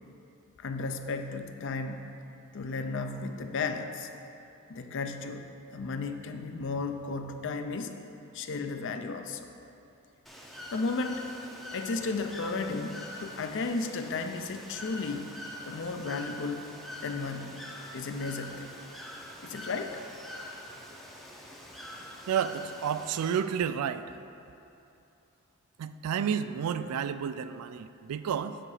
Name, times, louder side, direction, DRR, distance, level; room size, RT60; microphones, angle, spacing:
voice 1, 0.6-2.0 2.5-4.1 4.7-5.4 5.7-8.0 8.3-9.5 10.7-11.4 11.7-15.3 15.6-16.7 17.0-17.7 17.9-18.7 19.4-20.0, left 3 dB, 55° left, 7 dB, 0.4 m, -34 dB
Bird / Water, 10.3-23.4, left 1 dB, ahead, 0.5 m, -44 dB
voice 2, 22.3-24.2 25.8-28.6, right 8 dB, 80° right, 13 dB, 0.3 m, -31 dB
7.8 x 4.8 x 4.8 m, 2.8 s
head